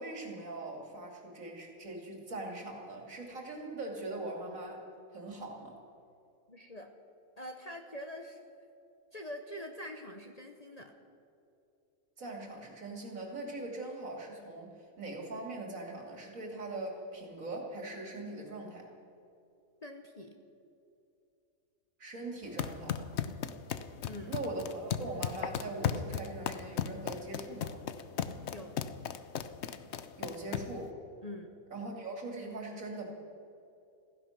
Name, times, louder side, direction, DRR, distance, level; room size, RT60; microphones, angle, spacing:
voice 1, 0.0-4.8 5.1-5.8 12.2-18.9 22.0-23.0 24.3-27.8 30.2-31.0 31.7-33.1, right 2 dB, 65° right, 1 dB, 3.0 m, -41 dB
voice 2, 6.5-6.9 7.4-8.4 9.1-10.9 19.8-20.3 24.1-24.3 28.5-28.8 31.2-31.5, left 1 dB, 30° left, 3 dB, 1.0 m, -44 dB
sound 1, 22.4-30.8, left 8 dB, 60° left, 0.9 m, -36 dB
16.0 x 15.0 x 5.9 m, 2.7 s
omnidirectional pair, 1.5 m